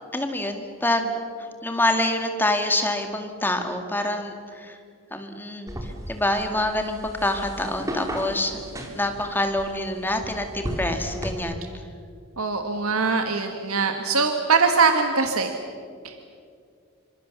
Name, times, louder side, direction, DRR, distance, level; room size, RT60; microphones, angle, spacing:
voice 1, 0.1-4.8 5.1-8.6 8.9-11.6, left 1 dB, 10° left, 5 dB, 2.1 m, -26 dB
sound 1, 5.7-11.3, equal, 15° right, 3.1 m, -35 dB
voice 2, 12.4-15.5 16.0-16.3, right 4 dB, 75° right, 5 dB, 1.6 m, -22 dB
27.0 x 25.5 x 7.0 m, 2.3 s
head